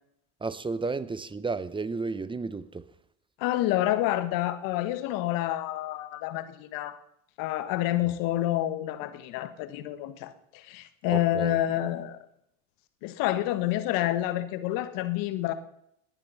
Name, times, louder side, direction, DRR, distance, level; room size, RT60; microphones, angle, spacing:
voice 1, 0.4-2.8 11.1-11.6, right 4 dB, 15° right, 17 dB, 0.8 m, -32 dB
voice 2, 3.4-7.0 7.4-12.2 13.0-15.5, left 14 dB, 60° left, 11 dB, 1.5 m, -28 dB
19.0 x 9.9 x 5.7 m, 0.75 s
hypercardioid pair, 85°, 37 cm